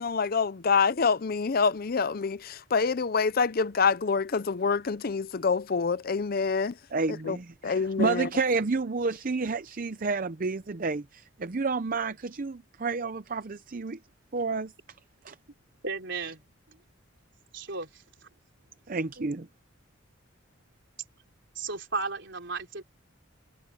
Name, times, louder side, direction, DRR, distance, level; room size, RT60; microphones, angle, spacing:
voice 1, 0.0-6.7 7.2-7.4 7.6-8.3, left 5 dB, 45° left, 0.5 m, -26 dB
voice 2, 6.9-14.0 14.3-14.7 15.2-15.4 18.9-19.5, right 4 dB, 45° right, 0.6 m, -30 dB
voice 3, 15.8-16.4 17.5-17.9 19.2-19.3 21.6-22.8, right 4 dB, 60° right, 4.4 m, -34 dB
head